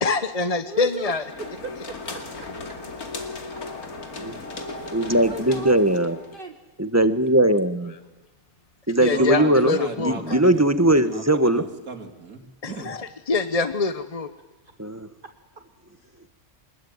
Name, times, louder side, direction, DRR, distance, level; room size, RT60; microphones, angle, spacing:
voice 1, 0.0-1.2 9.0-10.4 12.6-14.3, left 4 dB, 30° left, 11 dB, 0.9 m, -25 dB
voice 2, 0.7-1.1 1.4-1.7 2.1-3.0 3.5-3.6 4.8-5.7 6.3-6.6 16.0-16.1, right 4 dB, 40° right, 6 dB, 1.4 m, -38 dB
sound 1, 0.9-6.4, left 3 dB, 85° left, 2.8 m, -36 dB
voice 3, 4.9-6.2 6.8-7.9 8.9-11.6 14.8-15.1, right 1 dB, 10° right, 11 dB, 1.1 m, -20 dB
voice 4, 9.1-10.7 11.0-12.9, right 4 dB, 70° right, 6 dB, 3.1 m, -35 dB
25.0 x 20.5 x 9.4 m, 1.1 s
omnidirectional pair, 1.5 m